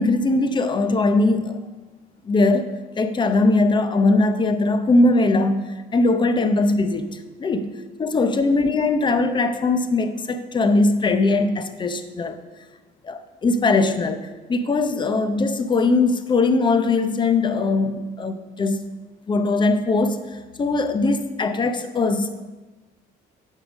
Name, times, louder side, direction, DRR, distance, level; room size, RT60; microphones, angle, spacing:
voice 1, 0.0-1.6 2.2-2.7 3.0-7.7 8.0-12.4 13.0-18.9 19.3-20.2 20.6-22.3, left 3 dB, 30° left, 10 dB, 0.7 m, -20 dB
8.5 x 6.5 x 5.2 m, 1.2 s
cardioid pair, 110°, 17 cm